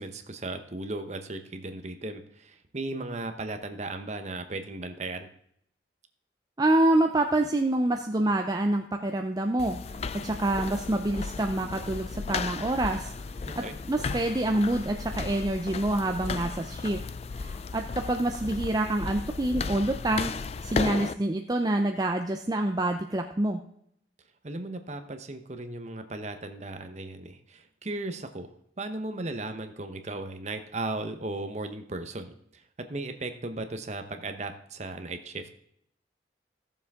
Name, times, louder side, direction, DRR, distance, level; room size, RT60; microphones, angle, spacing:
voice 1, 0.0-5.3 13.5-13.8 24.4-35.5, right 2 dB, 40° right, 8 dB, 0.9 m, -36 dB
voice 2, 6.6-13.1 13.9-17.0 17.3-20.3 20.6-23.6, right 1 dB, 20° right, 4 dB, 0.5 m, -27 dB
sound 1, 9.6-21.1, left 4 dB, 35° left, 0.4 m, -35 dB
15.5 x 7.1 x 3.6 m, 0.71 s
head